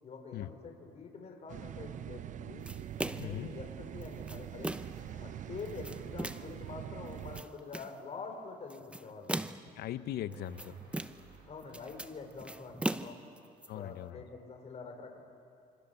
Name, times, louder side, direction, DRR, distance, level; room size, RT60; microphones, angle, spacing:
voice 1, 0.0-2.7 3.0-4.7 5.2-9.3 11.5-13.2 13.7-15.2, left 4 dB, 40° left, 3 dB, 4.4 m, -46 dB
sound 1, 1.5-7.4, right 10 dB, 50° right, 0.6 m, -44 dB
sound 2, 2.7-3.4 4.0-5.0 5.6-6.6 7.1-8.0 8.7-9.8 10.3-11.4 11.6-13.7, right 1 dB, 5° right, 0.8 m, -39 dB
voice 2, 3.2-3.5 9.7-10.8 13.7-14.2, left 13 dB, 70° left, 13 dB, 0.9 m, -39 dB
sound 3, 4.4-6.7 9.3-12.4, right 5 dB, 70° right, 7.2 m, -57 dB
26.0 x 26.0 x 6.9 m, 2.5 s
cardioid pair, 110°, 17 cm